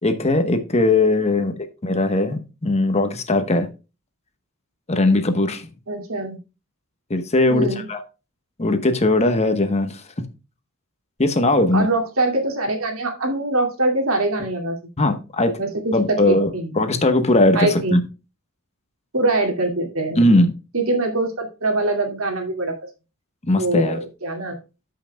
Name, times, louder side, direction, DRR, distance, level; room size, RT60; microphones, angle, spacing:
voice 1, 0.0-3.7 4.9-5.7 7.1-8.0 8.6-10.3 11.2-11.9 15.0-15.6 15.9-16.5 16.8-18.0 20.2-20.5 23.4-24.0, left 2 dB, 30° left, 8 dB, 1.0 m, -19 dB
voice 2, 5.9-6.4 7.5-7.9 11.7-14.8 15.6-16.7 17.5-18.0 19.1-20.3 20.7-22.8 23.5-24.6, right 2 dB, 80° right, 3 dB, 2.3 m, -23 dB
13.5 x 5.8 x 2.2 m, 0.29 s
head